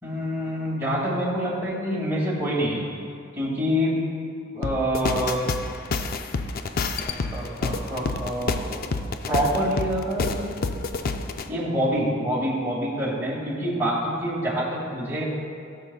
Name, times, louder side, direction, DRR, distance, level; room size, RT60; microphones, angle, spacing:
voice 1, 0.0-3.0 3.4-4.0 4.5-5.4 7.0-8.8 9.3-10.4 11.5-15.2, equal, 10° right, -6 dB, 2.1 m, -26 dB
sound 1, 4.6-11.5, left 3 dB, 45° left, 0.4 m, -28 dB
17.0 x 6.7 x 2.3 m, 2.6 s
head